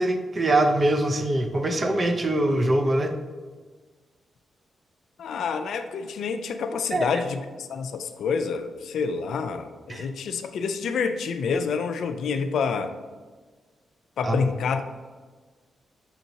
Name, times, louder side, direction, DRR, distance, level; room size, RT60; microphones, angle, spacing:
voice 1, 0.0-3.1 6.9-7.1 9.9-10.1 14.2-14.4, right 1 dB, 40° right, 5 dB, 0.5 m, -23 dB
voice 2, 5.2-12.9 14.2-14.8, left 5 dB, 75° left, 8 dB, 0.3 m, -28 dB
6.9 x 2.8 x 2.7 m, 1.4 s
supercardioid pair, 55°, 0 cm